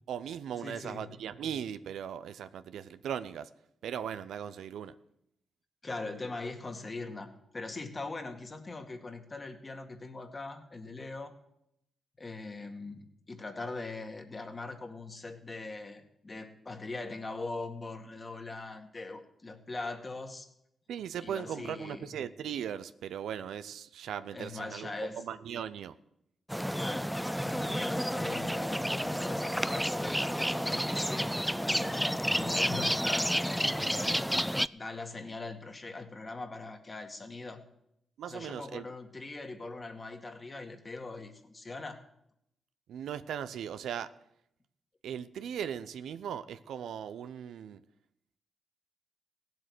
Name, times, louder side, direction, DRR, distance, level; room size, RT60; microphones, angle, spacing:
voice 1, 0.1-3.5 3.8-4.9 20.9-26.0 38.2-38.9 42.9-44.1 45.0-47.8, right 9 dB, 80° right, 0.5 m, -38 dB
voice 2, 0.6-1.1 5.8-11.3 12.2-20.5 21.2-22.1 24.3-25.2 26.7-27.2 27.4-31.3 31.6-33.4 33.7-34.2 34.7-37.6 38.3-42.0, left 3 dB, 35° left, 2.1 m, -41 dB
sound 1, 26.5-34.7, equal, ahead, 0.4 m, -30 dB
16.5 x 7.8 x 6.7 m
supercardioid pair, 45°, 0 cm